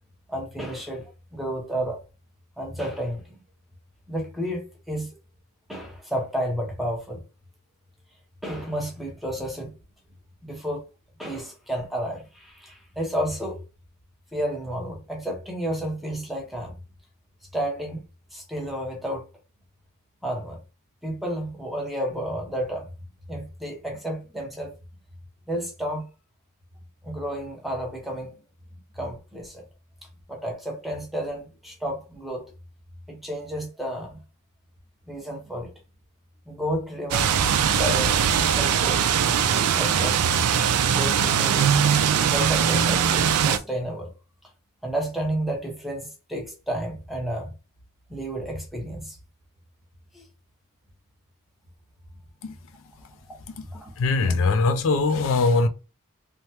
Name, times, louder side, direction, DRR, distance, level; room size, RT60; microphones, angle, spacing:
voice 1, 0.3-2.0 2.6-3.4 4.1-5.1 5.7-7.2 8.4-9.7 10.4-10.9 11.2-13.6 14.3-16.7 17.5-18.0 18.3-19.3 20.2-20.6 21.0-22.9 23.3-24.7 25.5-26.1 27.0-28.4 28.9-29.6 30.3-32.5 33.1-34.2 35.1-35.7 36.5-37.4 37.7-38.3 38.6-39.1 39.5-40.4 40.7-41.7 42.3-44.1 44.8-47.5 48.1-49.2 50.1-50.3 53.7-53.9, equal, ahead, 0.7 m, -31 dB
sound 1, 37.1-43.6, right 8 dB, 80° right, 0.4 m, -21 dB
voice 2, 54.0-55.7, left 3 dB, 60° left, 0.4 m, -21 dB
3.2 x 2.1 x 2.8 m
head